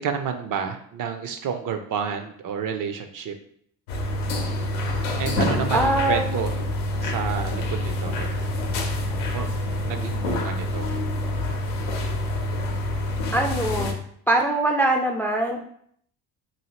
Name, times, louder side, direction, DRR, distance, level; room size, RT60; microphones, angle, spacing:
voice 1, 0.0-3.3 5.2-6.5 7.0-8.3 9.3-9.5 9.8-10.9, right 7 dB, 55° right, 7 dB, 0.6 m, -30 dB
sound 1, 3.9-13.9, left 1 dB, 85° left, 0.6 m, -27 dB
voice 2, 5.7-6.4 13.3-13.9 14.3-15.6, right 2 dB, 5° left, 2 dB, 0.3 m, -22 dB
2.7 x 2.7 x 2.9 m, 0.65 s
supercardioid pair, 65°, 40 cm